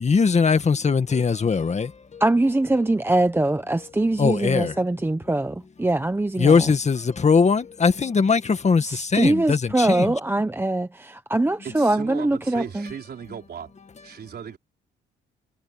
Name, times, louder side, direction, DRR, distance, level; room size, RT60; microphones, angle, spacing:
voice 1, 0.0-1.9 4.2-4.7 6.4-8.8 9.1-10.1, left 5 dB, 35° left, 2.0 m, -20 dB
voice 2, 2.2-6.5 8.9-12.9, right 2 dB, 10° right, 1.1 m, -23 dB
voice 3, 11.6-13.7 14.0-14.6, right 7 dB, 55° right, 4.0 m, -37 dB
cardioid pair, 90°, 20 cm